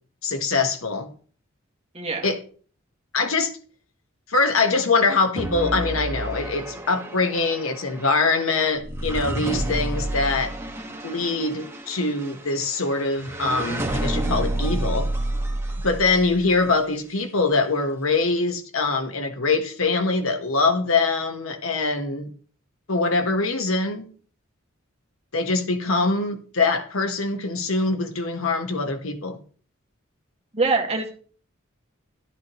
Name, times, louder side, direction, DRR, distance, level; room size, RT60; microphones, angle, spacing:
voice 1, 0.2-1.1 2.2-2.4 3.1-3.5 4.3-10.5 11.0-15.1 15.8-22.3 22.9-24.1 25.3-29.4, left 3 dB, 90° left, 1.5 m, -23 dB
voice 2, 1.9-2.3 30.5-31.1, right 3 dB, 30° right, 2.1 m, -23 dB
sound 1, 5.4-16.7, right 1 dB, 15° right, 1.7 m, -30 dB
12.5 x 10.5 x 3.1 m
head